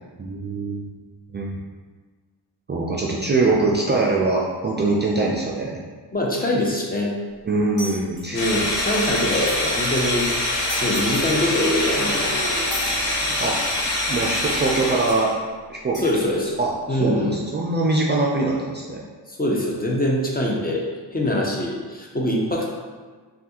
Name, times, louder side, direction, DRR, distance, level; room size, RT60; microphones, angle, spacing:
voice 1, 0.2-0.9 1.3-1.6 2.7-5.8 7.5-8.5 13.4-13.6 14.1-15.3 15.7-16.0 16.6-19.0, right 3 dB, 25° right, -3 dB, 0.4 m, -23 dB
voice 2, 6.1-7.1 8.3-12.3 16.0-16.5 16.9-17.4 19.3-22.7, left 1 dB, 20° left, -2 dB, 0.6 m, -24 dB
sound 1, 7.8-8.2 8.8-8.9 9.0-9.6 9.8-10.0 10.7-11.3 12.0-12.1 12.7-13.5 14.4-14.5 15.1-15.2 15.9-16.1, left 1 dB, 55° left, 1.4 m, -35 dB
sound 2, 8.4-15.3, left 1 dB, 80° left, 0.9 m, -24 dB
Motorcycle / Engine, 9.6-15.2, left 1 dB, ahead, 1.1 m, -38 dB
3.2 x 2.4 x 2.9 m, 1.4 s
cardioid pair, 60°, 43 cm